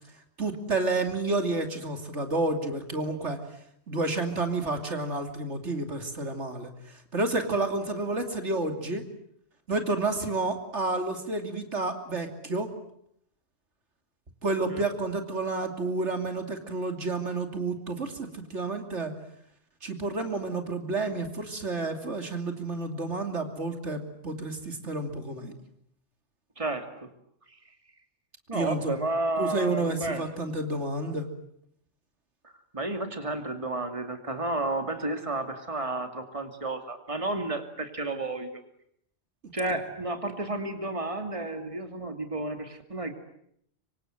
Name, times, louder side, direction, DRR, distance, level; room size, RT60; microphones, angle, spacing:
voice 1, 0.4-3.4 3.9-9.0 9.7-12.7 14.4-19.1 19.8-25.5 28.5-28.9 29.4-31.3, right 2 dB, 85° right, 6 dB, 3.2 m, -30 dB
voice 2, 26.6-27.1 28.5-30.2 32.4-38.6 39.5-43.1, right 2 dB, 30° right, 7 dB, 2.7 m, -32 dB
25.5 x 24.5 x 9.2 m, 0.71 s
omnidirectional pair, 1.2 m